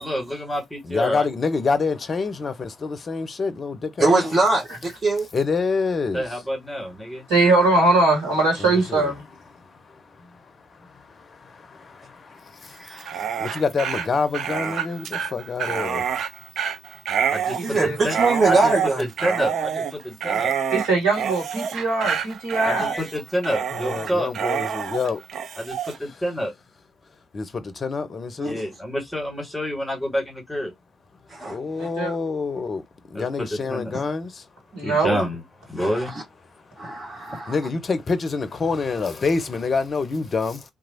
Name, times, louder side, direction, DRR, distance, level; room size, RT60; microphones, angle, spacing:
voice 1, 0.0-1.3 6.1-7.2 17.3-18.1 18.4-18.7 19.0-20.5 22.6-24.3 25.6-26.5 28.5-30.7 33.1-33.8 34.8-35.4 35.7-36.1, equal, 5° left, 1.9 m, -28 dB
voice 2, 0.8-4.2 5.3-6.3 8.6-9.1 11.3-12.8 13.4-16.0 23.7-25.2 27.3-28.6 31.5-32.8 33.1-34.4 37.5-40.6, left 4 dB, 45° left, 0.6 m, -26 dB
voice 3, 4.0-5.3 12.8-13.4 17.6-19.0 22.8-23.0 28.4-28.6 31.3-31.9 35.8-36.2 36.8-37.6, right 2 dB, 35° right, 1.0 m, -23 dB
voice 4, 7.3-9.2 17.6-18.0 20.7-23.0 31.8-32.1 34.7-35.2, right 2 dB, 75° right, 1.4 m, -21 dB
Dog, 12.9-26.0, right 7 dB, 60° right, 0.4 m, -27 dB
2.9 x 2.4 x 2.7 m
figure-of-eight pair, 40°, 0 cm